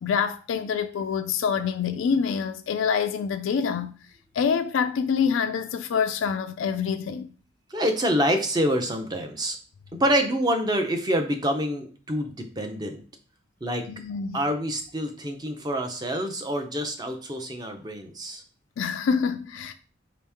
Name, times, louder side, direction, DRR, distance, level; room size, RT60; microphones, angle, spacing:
voice 1, 0.0-3.9 4.3-7.3 13.9-14.4 18.8-19.7, left 6 dB, 80° left, 0.3 m, -26 dB
voice 2, 7.7-9.6 10.0-13.0 13.6-13.9 14.3-18.4, equal, 20° right, 0.6 m, -26 dB
4.8 x 2.9 x 3.5 m
head